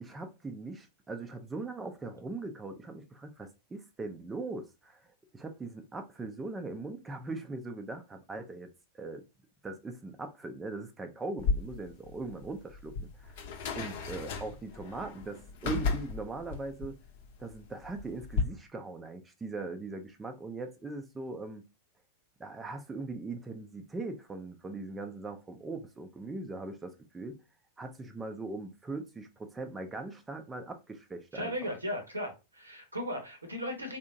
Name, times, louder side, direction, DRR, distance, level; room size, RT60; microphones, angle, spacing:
voice 1, 0.0-5.0 5.3-9.2 9.6-13.3 13.8-17.0 17.4-21.7 22.4-27.4 27.8-31.5, right 3 dB, 15° right, 0.4 m, -40 dB
sound 1, 11.4-18.4, left 5 dB, 50° left, 0.7 m, -35 dB
voice 2, 31.3-34.0, equal, 80° right, 0.9 m, -37 dB
3.4 x 2.7 x 2.6 m
figure-of-eight pair, 90°, 0 cm